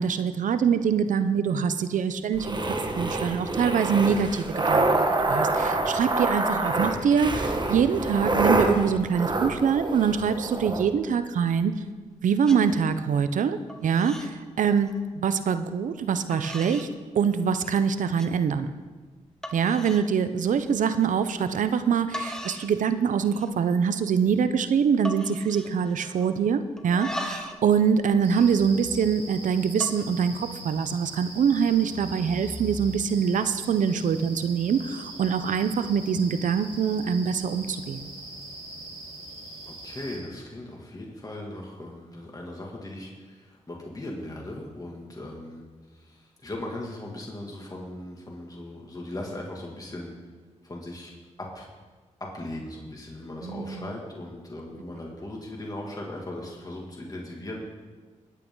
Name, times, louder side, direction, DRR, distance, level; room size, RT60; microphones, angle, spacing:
voice 1, 0.0-11.7 12.2-14.9 15.2-16.9 17.1-18.7 19.5-38.1 53.4-53.9, right 7 dB, 85° right, 11 dB, 0.7 m, -24 dB
sound 1, 2.3-10.8, right 2 dB, 35° right, 1.5 m, -26 dB
sound 2, 11.7-12.1 12.4-12.6 13.0-13.4 13.7-14.3 14.7-15.0 15.7-15.8 16.3-16.9 17.3-17.8 18.2-18.3 18.8-18.9 19.4-20.1 20.5-20.7 21.8-21.9 22.1-22.8 23.1-23.7 24.0-24.1 24.3-24.6 25.0-26.4 26.8-27.6 27.9-29.2 29.7-30.0, left 1 dB, 5° left, 1.4 m, -39 dB
sound 3, 28.2-40.2, right 1 dB, 55° right, 4.4 m, -41 dB
voice 2, 39.6-45.6 45.9-50.1 50.6-51.1 51.5-51.7 52.3-57.7, left 1 dB, 30° left, -1 dB, 2.4 m, -38 dB
20.0 x 8.4 x 3.9 m, 1.4 s
cardioid pair, 60°, 13 cm